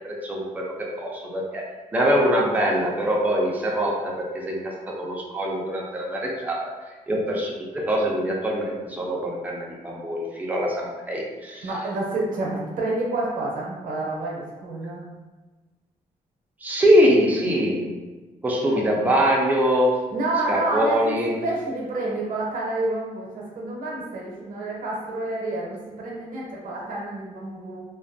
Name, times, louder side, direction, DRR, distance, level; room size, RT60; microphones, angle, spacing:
voice 1, 0.0-6.6 7.1-11.7 16.6-17.9 18.4-20.0 20.5-21.4, equal, 10° right, -2 dB, 0.4 m, -23 dB
voice 2, 11.6-15.1 20.1-27.8, right 2 dB, 75° right, -3 dB, 0.6 m, -29 dB
2.4 x 2.2 x 2.6 m, 1.2 s
wide cardioid pair, 140°, 14 cm